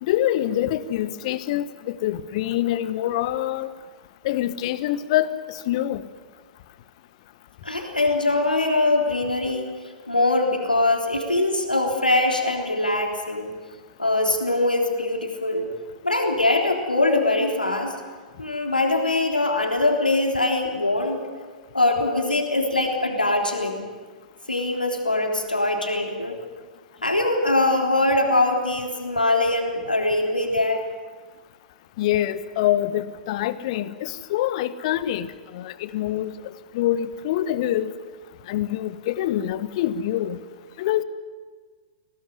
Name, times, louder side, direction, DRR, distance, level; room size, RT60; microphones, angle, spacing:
voice 1, 0.0-3.7 4.2-6.0 32.0-36.3 36.7-37.9 38.5-40.4 40.8-41.0, left 12 dB, 45° left, 14 dB, 1.3 m, -25 dB
voice 2, 7.6-9.7 10.1-13.6 14.0-15.7 16.0-18.0 18.4-21.2 21.7-23.9 24.5-26.4 27.0-30.8, left 2 dB, 85° left, 2 dB, 3.4 m, -22 dB
22.5 x 18.0 x 9.7 m, 1.5 s
figure-of-eight pair, 105°, 5 cm